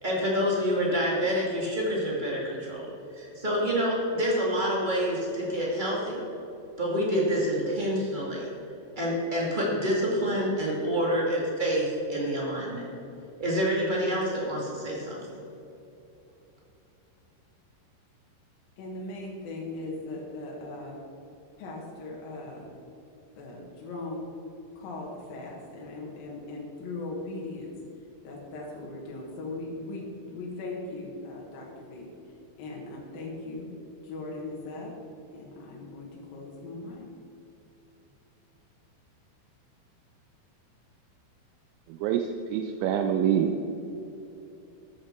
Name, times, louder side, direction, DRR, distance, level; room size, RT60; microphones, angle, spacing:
voice 1, 0.0-2.8 3.1-6.2 6.8-8.5 8.9-12.9 13.4-15.2, equal, 40° right, -4 dB, 0.6 m, -27 dB
voice 2, 18.8-21.0 21.6-22.7 23.3-24.2 24.8-27.7 28.2-32.1 32.6-33.7 34.0-34.9 35.3-37.1, left 2 dB, 60° left, -3 dB, 3.0 m, -39 dB
voice 3, 42.0-43.5, right 9 dB, 80° right, 5 dB, 2.8 m, -26 dB
14.0 x 10.0 x 4.5 m, 2.9 s
omnidirectional pair, 5.4 m